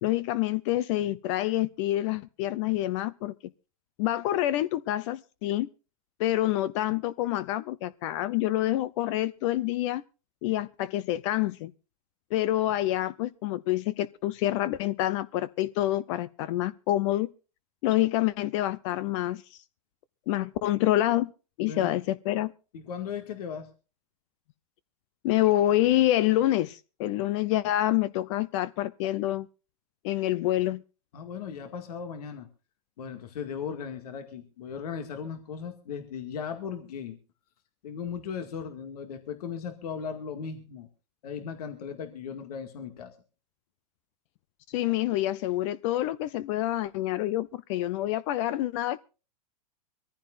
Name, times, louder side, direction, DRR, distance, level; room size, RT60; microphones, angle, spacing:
voice 1, 0.0-3.3 4.0-5.7 6.2-10.0 10.4-11.7 12.3-17.3 17.8-19.6 20.3-21.3 21.6-22.5 25.2-29.5 30.0-30.8 44.7-49.0, left 14 dB, 50° left, 0.7 m, -27 dB
voice 2, 21.6-21.9 22.7-23.7 31.1-32.5 33.0-37.2 37.8-40.9 41.2-43.1, left 7 dB, 70° left, 2.1 m, -37 dB
24.0 x 14.5 x 2.6 m
hypercardioid pair, 130°, 20 cm